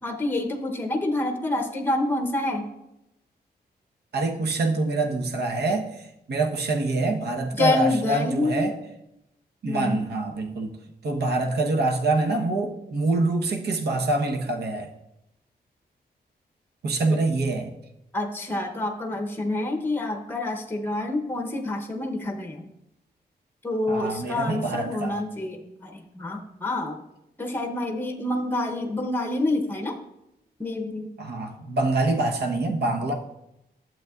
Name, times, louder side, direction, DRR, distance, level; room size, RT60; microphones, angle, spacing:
voice 1, 0.0-2.7 7.6-8.7 9.7-10.0 18.1-22.6 23.6-27.0 27.4-30.0 30.6-31.1, left 2 dB, 10° left, 3 dB, 0.7 m, -27 dB
voice 2, 4.1-8.7 9.6-10.8 11.0-14.9 16.8-17.7 23.9-25.2 31.2-33.1, right 2 dB, 75° right, 3 dB, 1.0 m, -25 dB
11.5 x 7.4 x 2.4 m, 0.86 s
wide cardioid pair, 175°, 17 cm